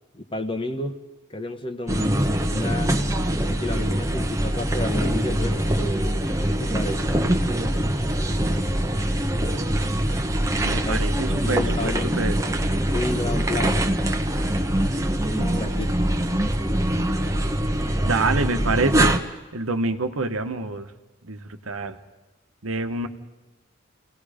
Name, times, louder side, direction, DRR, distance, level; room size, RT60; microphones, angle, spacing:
voice 1, 0.1-1.0 1.3-2.1 2.5-2.9 3.5-6.2 6.5-7.0 10.8-11.0 11.4-12.1 12.9-13.8 15.3-16.0, left 2 dB, 25° left, 8 dB, 1.1 m, -31 dB
sound 1, 1.9-19.2, right 1 dB, 15° right, 1.0 m, -23 dB
voice 2, 10.6-12.4 18.0-19.1 19.5-20.9 21.2-22.0 22.6-23.1, right 3 dB, 85° right, 7 dB, 1.3 m, -26 dB
29.0 x 18.0 x 5.1 m, 1.1 s
head